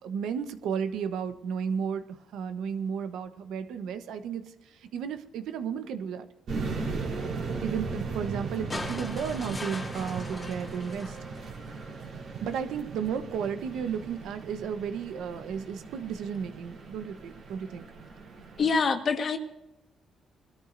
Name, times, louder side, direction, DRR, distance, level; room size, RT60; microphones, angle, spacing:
voice 1, 0.0-6.3 7.6-11.2 12.4-17.8, right 7 dB, 85° right, 9 dB, 1.1 m, -33 dB
sound 1, 6.5-18.8, right 4 dB, 70° right, 3.5 m, -38 dB
sound 2, 8.7-12.0 13.3-13.4, left 2 dB, 25° left, 1.9 m, -40 dB
voice 2, 18.6-19.4, left 5 dB, 50° left, 6 dB, 1.6 m, -25 dB
21.0 x 13.5 x 2.7 m, 0.93 s
cardioid pair, 90°, 0 cm